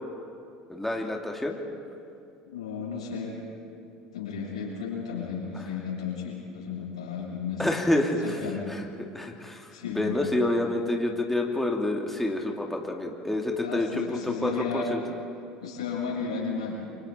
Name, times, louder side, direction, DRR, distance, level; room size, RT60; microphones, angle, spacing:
voice 1, 0.7-1.6 7.6-8.4 8.7-8.9 9.1-15.0, left 1 dB, 5° left, 0 dB, 2.5 m, -28 dB
voice 2, 2.4-3.3 4.1-7.8 8.2-8.7 9.7-10.3 13.6-14.9 15.6-16.7, left 5 dB, 85° left, -5 dB, 7.9 m, -33 dB
29.0 x 25.0 x 4.4 m, 2.6 s
hypercardioid pair, 75°, 3 cm